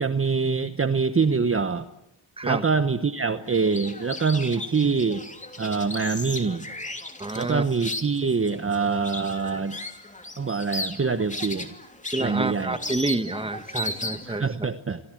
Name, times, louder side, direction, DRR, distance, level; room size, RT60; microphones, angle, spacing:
voice 1, 0.0-1.8 2.4-5.2 5.6-6.7 7.3-9.8 10.4-11.7 12.2-12.8 14.3-15.0, right 5 dB, 30° right, 1.0 m, -25 dB
sound 1, 3.5-14.4, left 1 dB, 15° left, 3.0 m, -36 dB
voice 2, 7.2-7.6 12.1-14.5, right 2 dB, 10° right, 1.4 m, -28 dB
27.0 x 27.0 x 7.7 m
cardioid pair, 90°, 47 cm